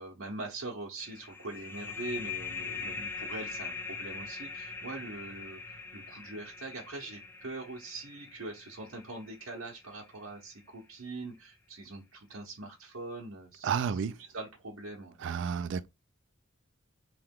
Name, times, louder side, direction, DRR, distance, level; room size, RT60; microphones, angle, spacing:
voice 1, 0.0-15.2, right 2 dB, 90° right, 0.9 m, -42 dB
sound 1, 1.0-10.3, left 5 dB, 10° left, 0.5 m, -42 dB
voice 2, 13.6-14.2 15.2-15.9, right 7 dB, 65° right, 0.3 m, -31 dB
3.1 x 2.9 x 3.6 m
head